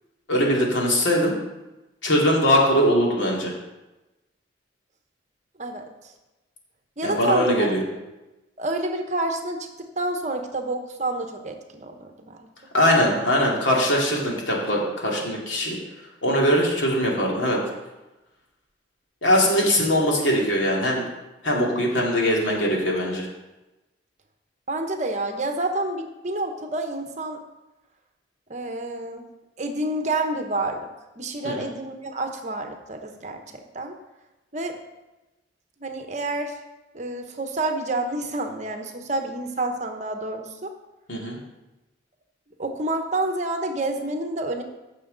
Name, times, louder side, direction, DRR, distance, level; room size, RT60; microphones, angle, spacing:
voice 1, 0.3-1.3 2.0-3.5 7.0-7.8 12.7-15.8 16.2-17.6 19.2-21.0 21.4-23.3 31.4-31.6 41.1-41.4, equal, 85° left, -2 dB, 2.4 m, -21 dB
voice 2, 5.6-6.1 7.0-7.7 8.6-12.5 24.7-27.4 28.5-29.3 29.6-30.9 31.2-34.0 34.5-34.8 35.8-36.6 36.9-40.7 42.6-44.6, right 2 dB, 40° right, 5 dB, 1.0 m, -29 dB
15.0 x 6.5 x 3.9 m, 1.0 s
head